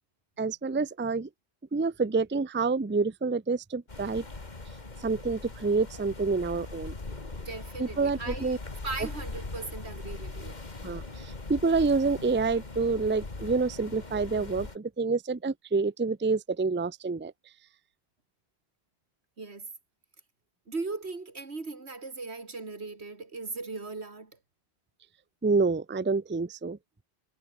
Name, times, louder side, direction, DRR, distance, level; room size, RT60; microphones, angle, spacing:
voice 1, 0.4-1.3 1.7-4.2 5.0-6.9 7.8-8.6 10.8-17.3 25.4-26.8, right 4 dB, 15° right, 0.5 m, -28 dB
sound 1, 3.9-14.8, left 3 dB, 45° left, 2.3 m, -40 dB
voice 2, 7.3-8.6 8.8-10.6 19.4-19.7 20.7-24.3, right 3 dB, 90° right, 2.9 m, -38 dB
omnidirectional pair, 1.1 m